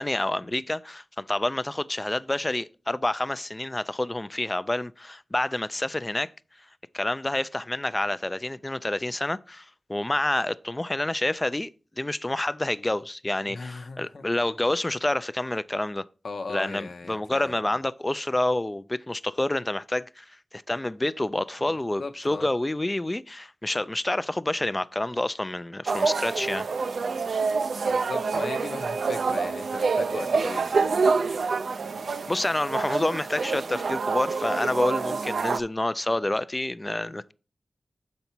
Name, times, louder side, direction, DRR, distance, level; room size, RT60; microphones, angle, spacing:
voice 1, 0.0-6.3 6.9-11.7 12.0-16.1 16.5-20.2 20.5-26.7 32.3-37.3, left 1 dB, 25° left, 0.4 m, -28 dB
voice 2, 13.5-14.2 16.2-17.6 21.6-22.5 27.9-31.0, left 3 dB, 75° left, 0.9 m, -37 dB
sound 1, 25.9-35.6, right 4 dB, 85° right, 0.4 m, -27 dB
7.0 x 5.3 x 4.4 m
wide cardioid pair, 60°, 0 cm